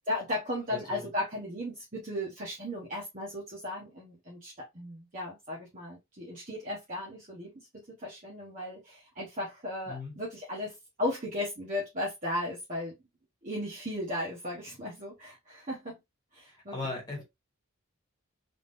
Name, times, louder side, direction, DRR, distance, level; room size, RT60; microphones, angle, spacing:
voice 1, 0.1-12.9 13.4-16.0 16.3-16.7 17.2-17.3, left 1 dB, 35° right, 1.3 m, -36 dB
voice 2, 16.7-17.2, left 3 dB, 20° left, 1.7 m, -37 dB
3.8 x 3.6 x 2.6 m
head